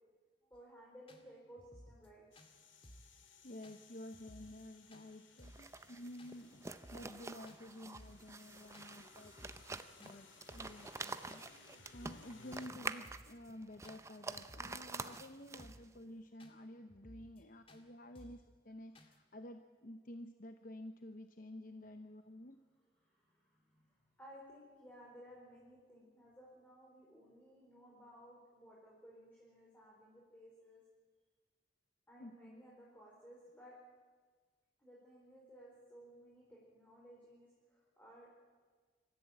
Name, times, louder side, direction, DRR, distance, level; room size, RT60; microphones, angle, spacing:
sound 1, 0.5-0.6 1.1-1.2 1.6-2.1 2.4-2.5 2.8-3.1 3.6-3.8 4.1-4.6 4.9-5.1 5.4-5.7 6.2-6.3 6.7-7.2 7.5-7.6 7.9-8.3 8.7-9.0 9.2-9.8 10.0-10.2 10.5-10.8 11.3-11.4 11.8-12.3 12.6-12.7 13.0-13.4 13.8-14.0 14.3-14.9 15.1-15.3 15.6-15.9 16.4-16.5 16.9-17.4 17.7-17.8 18.2-18.5 19.0-19.2, equal, 30° left, 2.0 m, -59 dB
voice 1, 0.5-2.2 17.3-17.5 22.7-30.8 32.1-33.8 34.8-38.3, equal, 10° left, -5 dB, 4.4 m, -58 dB
sound 2, 2.3-12.7, left 5 dB, 85° left, 2.7 m, -62 dB
voice 2, 3.4-9.3 10.0-11.6 11.9-22.6 32.2-32.7, left 1 dB, 45° left, 7 dB, 0.8 m, -51 dB
sound 3, 5.4-16.0, right 3 dB, 15° right, 0.6 m, -47 dB
26.0 x 14.5 x 8.6 m, 1.5 s
head